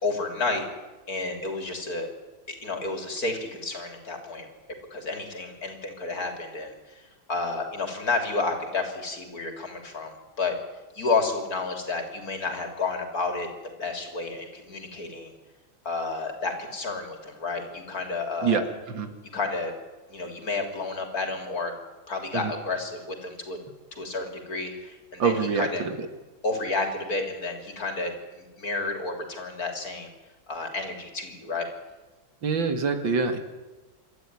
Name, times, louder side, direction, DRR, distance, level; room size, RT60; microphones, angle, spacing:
voice 1, 0.0-0.6 1.1-2.1 2.5-4.5 4.9-10.6 10.9-13.5 13.8-15.3 15.8-18.7 19.3-19.7 20.1-21.7 22.1-23.6 23.9-25.8 26.4-30.1 30.5-31.7, left 3 dB, 50° left, 5 dB, 3.9 m, -31 dB
voice 2, 25.2-26.1 32.4-33.4, right 5 dB, 75° right, 8 dB, 2.7 m, -25 dB
27.0 x 13.0 x 9.8 m, 1.2 s
omnidirectional pair, 2.1 m